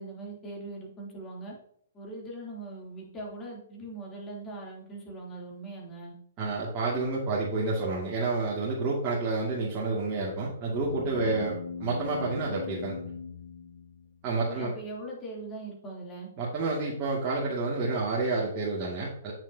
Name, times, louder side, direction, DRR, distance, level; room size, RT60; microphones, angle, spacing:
voice 1, 0.0-1.5 1.9-6.1 11.2-11.5 14.4-16.3, right 2 dB, 20° left, -2 dB, 3.3 m, -41 dB
voice 2, 6.4-13.0 14.2-14.7 16.4-19.3, right 3 dB, 30° right, -6 dB, 2.4 m, -29 dB
sound 1, 10.7-14.4, left 5 dB, 75° left, 0.8 m, -40 dB
8.8 x 7.4 x 2.9 m, 0.68 s
hypercardioid pair, 130°, 0 cm